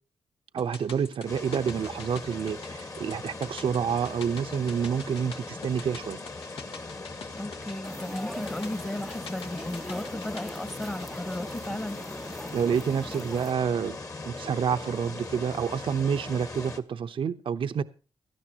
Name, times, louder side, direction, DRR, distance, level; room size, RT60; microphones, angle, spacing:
voice 1, 0.5-6.2 12.5-14.0 14.2-17.8, right 7 dB, 65° right, 0.8 m, -28 dB
sound 1, 0.6-12.9 13.2-13.3, left 5 dB, 80° left, 1.7 m, -47 dB
sound 2, 1.3-16.8, left 3 dB, 35° left, 1.7 m, -40 dB
voice 2, 7.3-12.0, left 1 dB, 15° left, 1.3 m, -35 dB
sound 3, 7.8-13.5, equal, ahead, 0.6 m, -42 dB
16.5 x 13.5 x 2.9 m
cardioid pair, 85°, 9 cm